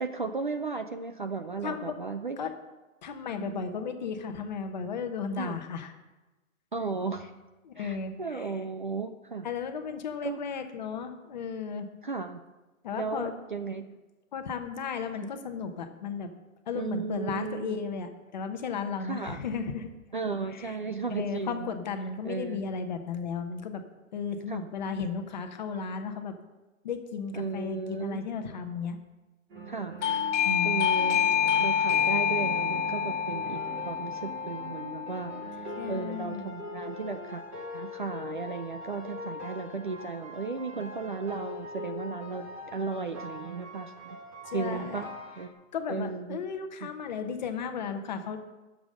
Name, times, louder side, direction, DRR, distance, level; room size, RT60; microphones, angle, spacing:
voice 1, 0.0-2.4 3.3-3.6 5.4-5.6 6.7-7.3 7.8-9.5 10.2-10.4 12.0-12.4 12.9-13.9 16.7-17.8 19.0-19.4 20.1-21.8 22.2-22.7 24.5-24.7 27.3-28.2 29.7-30.0 30.6-31.3 31.6-37.4 37.7-44.2 44.5-45.1 45.4-45.5 45.9-46.4 46.8-46.9, right 4 dB, 40° right, 8 dB, 0.4 m, -35 dB
voice 2, 1.6-1.9 2.4-2.5 3.0-5.9 7.6-8.5 9.4-11.9 12.8-13.3 14.3-16.3 16.7-19.9 20.5-20.8 21.1-23.8 24.1-26.3 26.8-29.0 30.4-30.8 35.8-36.5 44.5-45.1 45.7-48.4, left 5 dB, 30° left, 6 dB, 1.0 m, -34 dB
sound 1, 29.5-45.5, equal, 10° right, 1.0 m, -42 dB
Doorbell, 30.0-36.5, left 8 dB, 60° left, 0.6 m, -28 dB
12.5 x 7.2 x 6.4 m, 1.1 s
hypercardioid pair, 175°, 42 cm